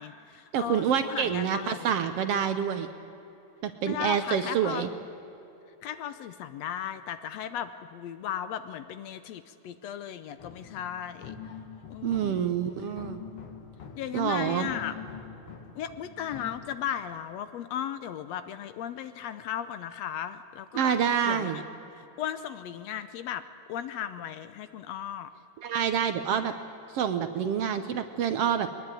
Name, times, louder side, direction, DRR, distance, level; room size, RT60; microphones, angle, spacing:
voice 1, 0.0-1.9 3.9-4.9 5.8-11.4 11.9-12.5 14.0-14.9 15.8-20.9 21.2-21.6 21.9-25.3, left 10 dB, 70° left, 12 dB, 1.8 m, -36 dB
voice 2, 0.5-2.9 3.6-4.9 12.0-13.2 14.1-14.7 20.8-21.6 25.6-26.5 26.9-28.7, right 8 dB, 65° right, 9 dB, 1.6 m, -27 dB
sound 1, 10.4-16.5, left 6 dB, 50° left, 2.5 m, -45 dB
22.0 x 20.5 x 9.1 m, 3.0 s
omnidirectional pair, 3.4 m